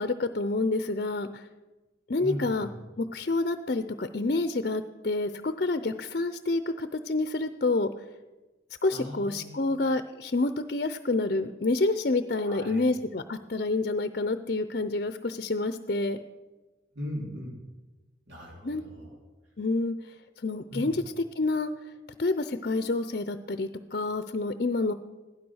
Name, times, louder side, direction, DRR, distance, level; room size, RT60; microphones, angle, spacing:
voice 1, 0.0-1.5 2.1-2.7 3.0-7.9 8.8-16.2 18.6-18.8 19.6-20.1 20.4-21.0 21.4-21.7 22.2-24.9, left 2 dB, 50° left, 11 dB, 0.6 m, -28 dB
voice 2, 2.2-2.7 8.9-9.7 12.4-12.8 16.9-17.6 18.3-19.2 20.7-20.9, equal, 75° right, -2 dB, 3.6 m, -38 dB
16.0 x 12.5 x 6.3 m, 1.2 s
head